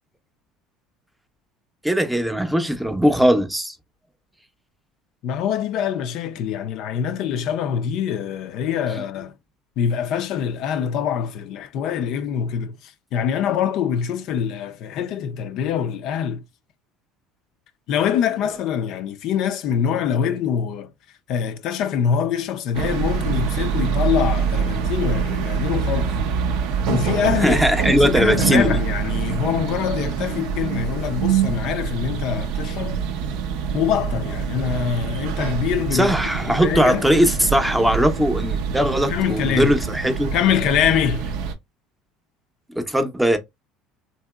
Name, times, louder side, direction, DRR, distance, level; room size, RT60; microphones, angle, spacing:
voice 1, 1.8-3.8 27.4-28.8 35.9-40.3 42.8-43.4, equal, 5° right, 0.6 m, -19 dB
voice 2, 5.2-9.3 9.8-16.4 17.9-20.9 21.3-26.2 26.9-33.0 33.7-36.2 36.5-37.1 39.1-39.8 40.3-41.3, left 8 dB, 65° left, 0.3 m, -24 dB
sound 1, 22.7-41.5, right 6 dB, 75° right, 0.5 m, -25 dB
2.8 x 2.7 x 2.2 m
supercardioid pair, 85°, 0 cm